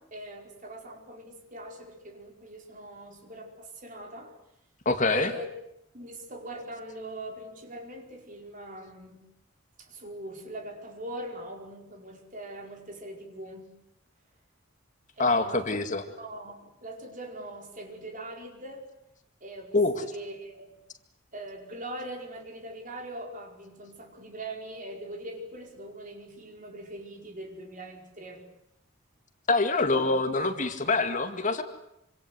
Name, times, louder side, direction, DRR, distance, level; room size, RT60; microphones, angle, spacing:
voice 1, 0.0-4.3 5.1-5.5 5.9-9.3 9.8-13.7 15.2-15.8 16.2-18.9 19.4-20.8 21.3-28.4 29.9-30.1, right 1 dB, 40° right, 2 dB, 5.0 m, -42 dB
voice 2, 4.9-5.3 15.2-16.0 19.7-20.0 29.5-31.6, left 3 dB, 40° left, 7 dB, 2.1 m, -25 dB
26.5 x 26.0 x 8.0 m, 0.80 s
head